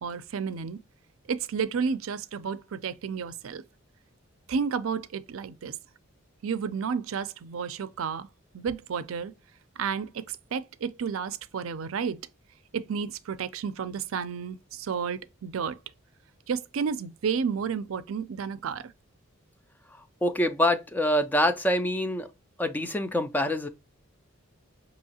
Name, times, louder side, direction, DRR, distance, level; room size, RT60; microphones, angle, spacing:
voice 1, 0.0-0.8 1.3-3.6 4.5-5.7 6.4-8.3 8.5-9.3 9.8-12.2 12.7-15.8 16.5-18.9, right 6 dB, 80° right, 0.4 m, -31 dB
voice 2, 20.2-22.3 22.6-23.7, left 1 dB, 10° left, 0.3 m, -25 dB
5.5 x 2.9 x 2.8 m
head